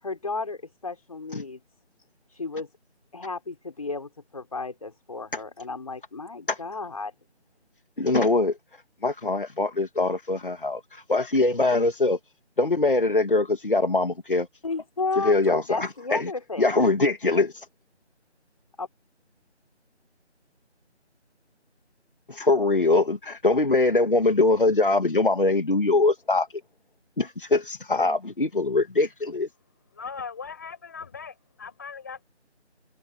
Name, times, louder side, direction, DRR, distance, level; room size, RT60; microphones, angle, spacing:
voice 1, 0.0-1.6 2.3-2.7 3.1-7.1 14.6-16.8 18.8-18.9, left 3 dB, 30° left, 5.2 m, -33 dB
voice 2, 8.0-8.6 9.0-12.2 12.6-14.5 15.2-16.3 16.6-17.7 22.3-26.5 27.2-29.5, left 2 dB, 50° left, 2.9 m, -22 dB
voice 3, 29.9-32.2, left 5 dB, 15° left, 6.5 m, -39 dB
figure-of-eight pair, 175°, 35 cm